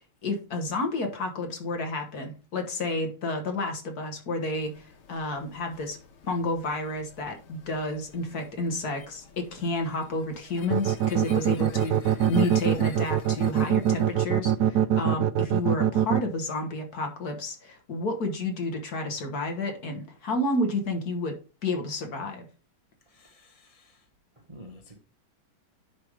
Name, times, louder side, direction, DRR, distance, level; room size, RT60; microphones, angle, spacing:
voice 1, 0.2-6.0 6.2-21.3 21.6-22.4, left 2 dB, 50° left, 1.7 m, -31 dB
sound 1, 4.6-14.4, left 6 dB, 90° left, 2.0 m, -49 dB
sound 2, 10.7-16.2, right 10 dB, 80° right, 0.9 m, -22 dB
voice 2, 23.1-24.0 24.4-25.0, equal, 25° right, 0.7 m, -50 dB
10.0 x 3.6 x 4.7 m
omnidirectional pair, 2.2 m